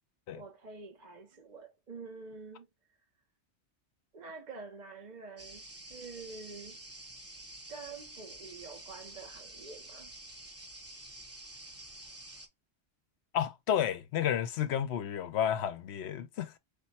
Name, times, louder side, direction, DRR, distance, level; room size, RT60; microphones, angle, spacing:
voice 1, 0.3-2.7 4.1-6.8 7.7-10.1, right 4 dB, 45° right, 0.8 m, -47 dB
sound 1, 5.4-12.5, right 2 dB, 15° right, 0.6 m, -49 dB
voice 2, 13.3-16.6, left 9 dB, 75° left, 0.8 m, -31 dB
5.1 x 2.1 x 4.1 m
omnidirectional pair, 1.2 m